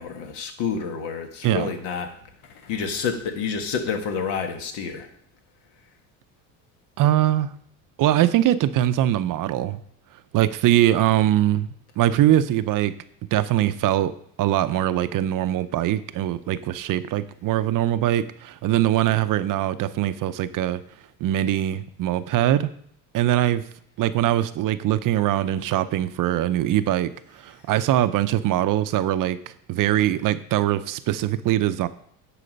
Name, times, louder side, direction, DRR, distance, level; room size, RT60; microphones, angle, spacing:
voice 1, 0.0-5.1, left 6 dB, 75° left, 5 dB, 1.6 m, -29 dB
voice 2, 7.0-7.5 8.0-9.8 10.3-12.9 13.3-14.1 14.4-20.8 21.2-22.7 23.1-23.6 24.0-31.9, right 13 dB, 50° right, 13 dB, 0.6 m, -22 dB
10.0 x 5.0 x 5.2 m, 0.64 s
cardioid pair, 110°, 42 cm